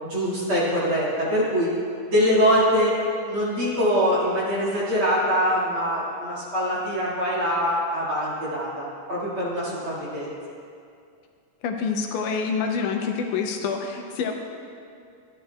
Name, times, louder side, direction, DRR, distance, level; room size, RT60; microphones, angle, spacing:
voice 1, 0.0-1.7 2.1-2.9 3.3-10.3, equal, 45° right, -8 dB, 2.6 m, -23 dB
voice 2, 11.6-14.3, left 5 dB, 85° left, 3 dB, 2.2 m, -27 dB
12.5 x 10.5 x 2.3 m, 2.4 s
omnidirectional pair, 3.6 m